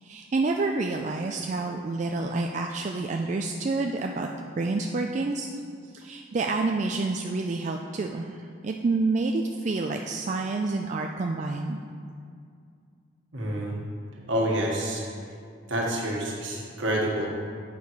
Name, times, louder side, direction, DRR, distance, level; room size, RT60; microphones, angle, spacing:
voice 1, 0.0-4.3 4.6-5.5 5.9-11.8, right 3 dB, 35° right, 2 dB, 0.3 m, -28 dB
voice 2, 13.3-13.8 14.2-15.0 15.7-17.3, right 1 dB, 70° right, -2 dB, 1.6 m, -28 dB
8.5 x 5.4 x 4.7 m, 2.3 s
head